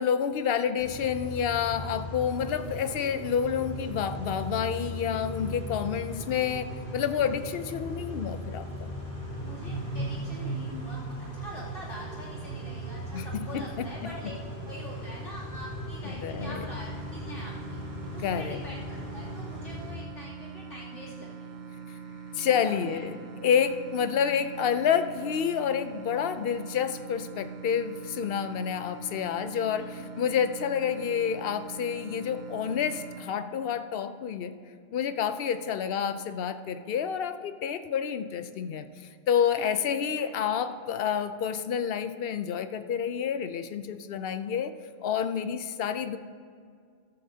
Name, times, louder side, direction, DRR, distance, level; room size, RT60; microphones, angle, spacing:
voice 1, 0.0-8.9 13.1-14.1 16.0-16.7 18.2-18.7 22.3-23.2 23.4-34.6 34.9-38.9 39.3-44.7 45.0-46.2, left 8 dB, 60° left, 11 dB, 0.7 m, -29 dB
Car / Idling / Accelerating revving vroom, 0.8-19.9, equal, 45° left, 3.1 m, -38 dB
voice 2, 9.4-14.3 14.6-17.8 18.1-21.7 22.5-23.1 29.8-30.2 39.6-40.3 40.6-40.8 45.7-45.8, left 1 dB, 85° left, -7 dB, 3.2 m, -44 dB
sound 1, 16.4-33.2, right 5 dB, 50° right, 0.6 m, -43 dB
13.5 x 13.0 x 2.8 m, 2.1 s
omnidirectional pair, 1.2 m